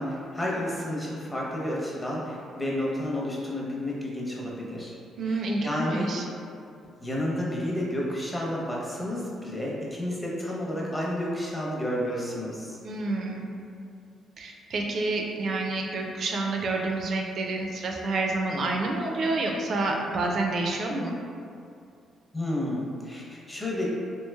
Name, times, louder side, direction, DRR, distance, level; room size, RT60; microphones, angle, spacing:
voice 1, 0.0-4.9 5.2-6.1 7.0-12.8 22.3-23.9, left 1 dB, 15° left, -4 dB, 0.6 m, -31 dB
voice 2, 5.2-6.2 12.8-13.5 14.4-21.2, right 2 dB, 60° right, 1 dB, 0.4 m, -28 dB
3.0 x 2.8 x 2.3 m, 2.4 s
cardioid pair, 90°, 0 cm